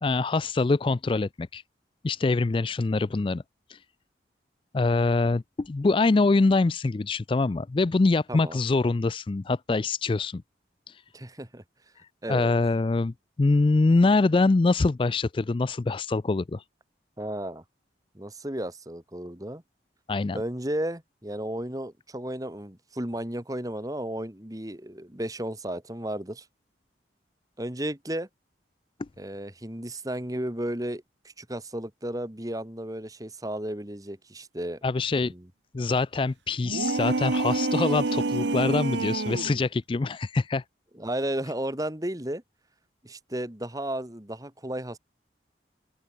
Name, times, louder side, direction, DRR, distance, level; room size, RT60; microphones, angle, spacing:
voice 1, 0.0-1.6 2.0-3.4 3.7-3.8 4.7-10.4 10.9-11.0 12.3-16.6 20.1-20.4 34.8-35.3 35.7-40.6, left 3 dB, 30° left, 0.3 m, -24 dB
voice 2, 11.1-11.6 12.2-12.5 17.2-17.6 18.1-19.6 20.3-26.5 27.6-28.3 29.2-34.8 35.2-35.5 40.9-42.4 43.0-45.0, right 1 dB, 20° right, 1.9 m, -33 dB
sound 1, 36.6-39.6, right 3 dB, 75° right, 1.0 m, -27 dB
open air
head